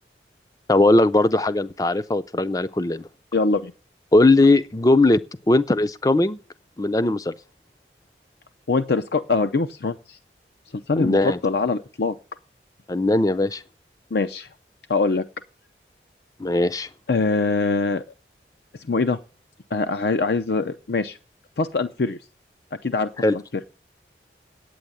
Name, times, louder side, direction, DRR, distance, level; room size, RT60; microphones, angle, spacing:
voice 1, 0.7-3.1 4.1-5.2 5.5-6.4 6.8-7.3 11.0-11.4 12.9-13.6 16.4-16.9 23.2-23.4, left 2 dB, 20° left, 0.5 m, -19 dB
voice 2, 3.3-3.7 8.7-10.2 10.9-12.1 14.1-14.5 14.9-15.2 17.1-18.0 18.9-19.2 19.7-21.2 21.6-22.2 22.8-23.4, left 3 dB, 65° left, 0.6 m, -23 dB
9.0 x 7.8 x 8.5 m
head